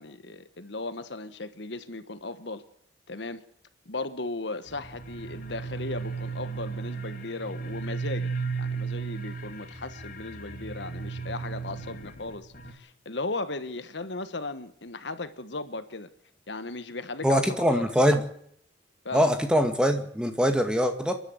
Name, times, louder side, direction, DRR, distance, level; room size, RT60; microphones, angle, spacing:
voice 1, 0.0-2.6 3.1-3.4 3.8-8.3 8.6-16.1 16.5-17.9 19.0-19.3, left 3 dB, 70° left, 1.4 m, -36 dB
sound 1, 4.7-12.7, right 4 dB, 45° left, 2.4 m, -35 dB
voice 2, 17.2-18.2 19.1-21.1, equal, 5° right, 2.1 m, -23 dB
29.5 x 11.5 x 7.9 m
head